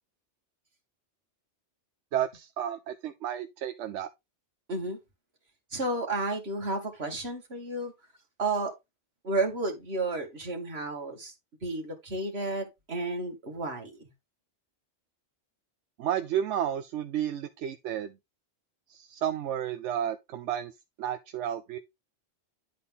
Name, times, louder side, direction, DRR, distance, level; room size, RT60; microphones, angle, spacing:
voice 1, 2.1-4.1 16.0-18.1 18.9-20.7 21.0-21.8, right 10 dB, 85° right, 0.9 m, -32 dB
voice 2, 5.7-7.9 8.4-8.7 9.2-11.3 11.6-14.1, right 2 dB, 60° right, 2.3 m, -32 dB
10.5 x 4.2 x 3.6 m
omnidirectional pair, 1.2 m